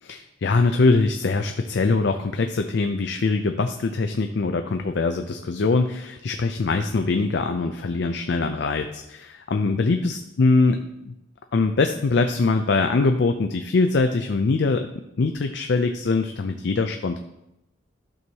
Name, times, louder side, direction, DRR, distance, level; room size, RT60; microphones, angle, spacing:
voice 1, 0.0-11.1 11.5-14.9 15.2-17.2, left 3 dB, 55° left, 6 dB, 0.4 m, -22 dB
12.0 x 6.2 x 2.9 m, 0.88 s
head